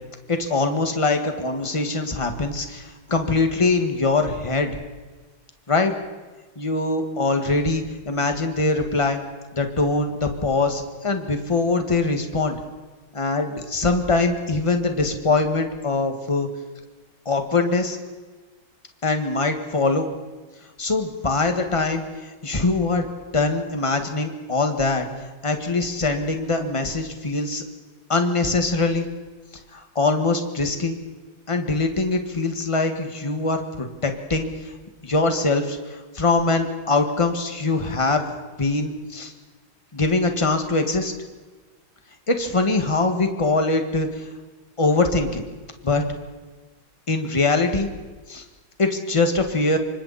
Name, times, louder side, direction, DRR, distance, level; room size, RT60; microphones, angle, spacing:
voice 1, 0.3-4.8 5.7-5.9 6.6-9.2 9.5-12.6 13.1-16.5 17.3-18.0 19.0-20.1 20.8-22.0 22.4-23.1 23.3-25.1 25.4-27.6 28.1-29.1 29.7-31.0 31.5-34.5 35.0-35.8 36.2-38.3 38.6-39.3 39.9-41.1 42.3-44.1 44.8-45.4 45.8-46.0 47.1-47.9 48.3-48.4 48.8-49.8, left 3 dB, 15° left, 5 dB, 1.7 m, -22 dB
27.5 x 24.5 x 4.3 m, 1.3 s
omnidirectional pair, 2.2 m